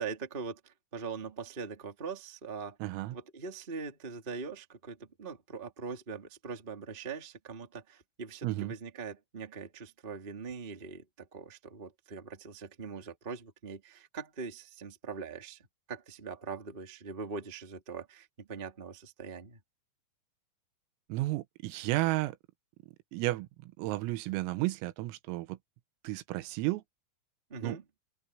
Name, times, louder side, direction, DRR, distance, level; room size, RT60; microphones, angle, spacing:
voice 1, 0.0-2.8 3.1-19.6 27.5-27.8, right 5 dB, 30° right, 1.0 m, -42 dB
voice 2, 2.8-3.2 8.4-8.8 21.1-22.4 23.1-25.6 26.0-26.8 27.6-27.8, right 18 dB, 90° right, 3.7 m, -32 dB
open air
omnidirectional pair, 5.9 m